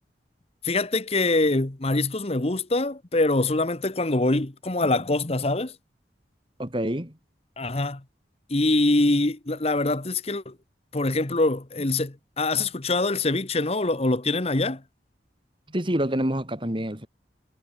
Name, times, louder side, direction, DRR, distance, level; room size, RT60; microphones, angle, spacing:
voice 1, 0.6-5.7 7.6-8.0 8.5-10.5 10.9-14.8, left 2 dB, 35° left, 1.2 m, -24 dB
voice 2, 6.6-7.1 15.7-17.1, right 1 dB, 30° right, 3.3 m, -27 dB
head